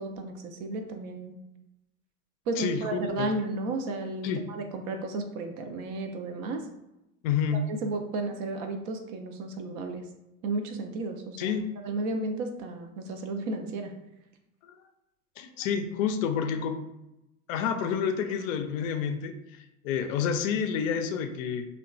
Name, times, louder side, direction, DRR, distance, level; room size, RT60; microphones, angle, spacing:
voice 1, 0.0-1.3 2.5-6.6 7.7-10.0 10.4-11.5 11.8-13.9, right 2 dB, 40° right, 4 dB, 0.4 m, -33 dB
voice 2, 2.6-3.3 4.2-4.4 7.2-7.6 11.4-11.7 14.6-14.7 15.4-16.8 17.5-21.7, left 7 dB, 60° left, 7 dB, 0.5 m, -29 dB
2.9 x 2.2 x 2.4 m, 0.91 s
hypercardioid pair, 75°, 47 cm